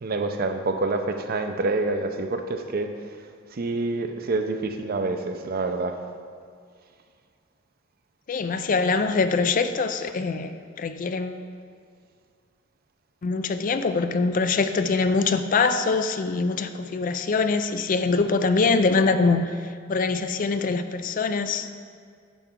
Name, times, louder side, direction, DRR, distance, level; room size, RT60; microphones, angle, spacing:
voice 1, 0.0-3.2 3.5-6.0, right 3 dB, 50° right, 6 dB, 0.6 m, -27 dB
voice 2, 8.3-11.4 13.2-19.5 19.9-21.7, left 4 dB, 40° left, 9 dB, 0.4 m, -23 dB
10.0 x 6.8 x 3.7 m, 2.1 s
head